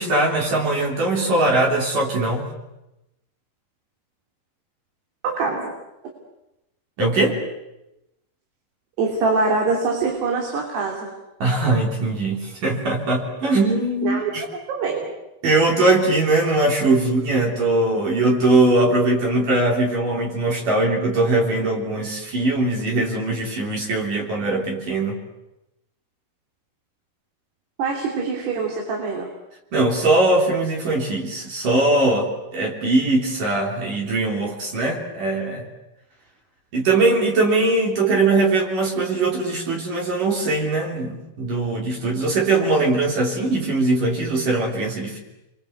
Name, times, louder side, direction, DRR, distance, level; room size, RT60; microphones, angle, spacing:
voice 1, 0.0-2.5 7.0-7.4 11.4-14.4 15.4-25.2 29.7-35.6 36.7-45.2, right 2 dB, 55° right, -1 dB, 5.0 m, -21 dB
voice 2, 5.2-5.7 9.0-11.1 14.0-15.2 27.8-29.3, right 4 dB, 85° right, 1 dB, 5.2 m, -24 dB
30.0 x 24.0 x 8.1 m, 0.92 s
omnidirectional pair, 4.6 m